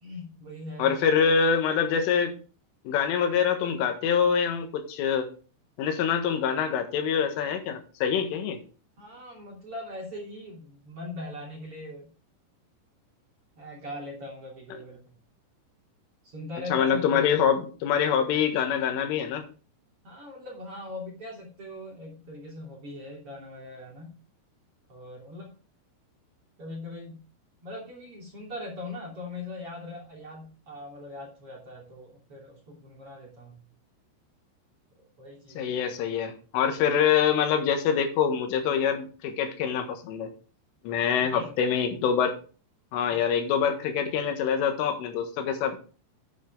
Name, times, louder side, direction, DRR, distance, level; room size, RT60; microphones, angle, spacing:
voice 1, 0.0-1.0 9.0-12.1 13.6-15.2 16.2-17.3 20.0-24.2 24.9-25.5 26.6-27.2 27.6-33.6 35.0-36.0 41.3-41.5, left 2 dB, 35° right, -2 dB, 3.1 m, -41 dB
voice 2, 0.8-2.4 2.9-5.3 5.8-8.6 16.7-19.5 35.6-40.3 40.8-42.4 42.9-45.8, left 7 dB, 85° left, 6 dB, 4.0 m, -25 dB
9.7 x 9.4 x 3.5 m, 0.36 s
omnidirectional pair, 5.7 m